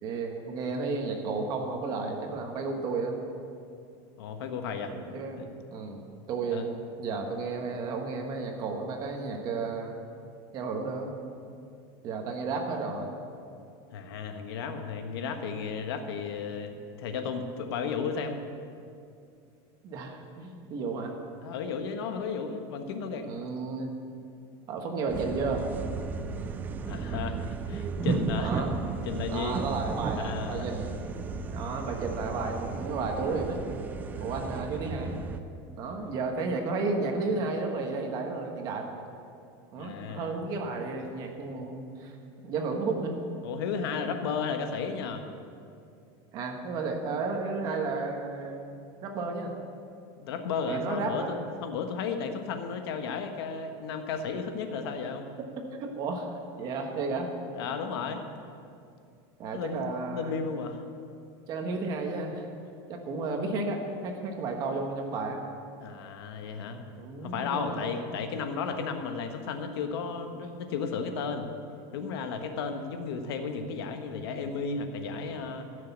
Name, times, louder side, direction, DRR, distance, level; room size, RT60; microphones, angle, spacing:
voice 1, 0.0-3.1 4.9-6.0 6.3-10.0 10.5-11.1 12.0-13.2 19.8-21.1 23.3-23.9 24.7-25.6 28.4-28.7 29.3-30.9 31.5-33.6 34.2-35.1 35.8-38.9 39.7-42.1 42.4-43.2 46.3-48.7 49.0-49.5 50.7-51.4 55.6-57.3 59.4-60.4 61.5-62.5 62.9-65.4 67.0-68.0, right 3 dB, 30° right, 3 dB, 1.3 m, -33 dB
voice 2, 4.2-4.9 5.3-5.5 6.5-6.6 13.9-18.4 21.4-23.3 26.9-27.4 27.7-28.6 29.0-29.6 30.1-30.7 34.1-34.3 39.8-40.4 43.4-45.2 50.2-55.3 57.5-58.2 59.5-60.8 65.8-66.8 67.2-71.5 71.9-75.7, left 5 dB, 80° left, 6 dB, 1.3 m, -34 dB
sound 1, 25.1-35.4, right 5 dB, 15° right, 0.4 m, -34 dB
14.0 x 6.6 x 8.2 m, 2.5 s
supercardioid pair, 180°, 13 cm